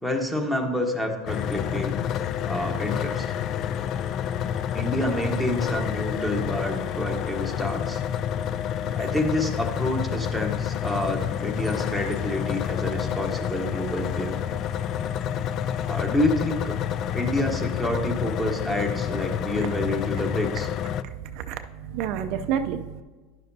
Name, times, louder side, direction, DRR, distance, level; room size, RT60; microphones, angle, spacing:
voice 1, 0.0-2.0 2.5-3.3 4.7-8.0 9.0-14.4 15.8-16.7 17.1-20.7, left 1 dB, 5° left, 3 dB, 1.1 m, -28 dB
sound 1, 1.3-21.0, left 9 dB, 45° left, 0.3 m, -29 dB
voice 2, 21.0-23.0, right 8 dB, 60° right, 7 dB, 0.4 m, -30 dB
10.5 x 6.7 x 2.7 m, 1.3 s
supercardioid pair, 120°, 0 cm